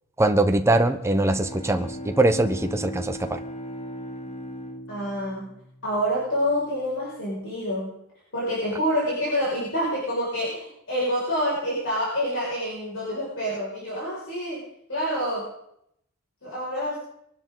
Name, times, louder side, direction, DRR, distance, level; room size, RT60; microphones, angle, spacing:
voice 1, 0.2-3.4, right 2 dB, 10° right, 7 dB, 1.0 m, -22 dB
Bowed string instrument, 1.0-6.5, equal, 30° left, 1.6 m, -38 dB
voice 2, 4.9-5.5 5.8-7.9 8.3-14.6 14.9-15.5 16.4-17.0, equal, 60° left, -7 dB, 6.2 m, -27 dB
23.0 x 12.0 x 4.0 m, 0.74 s
head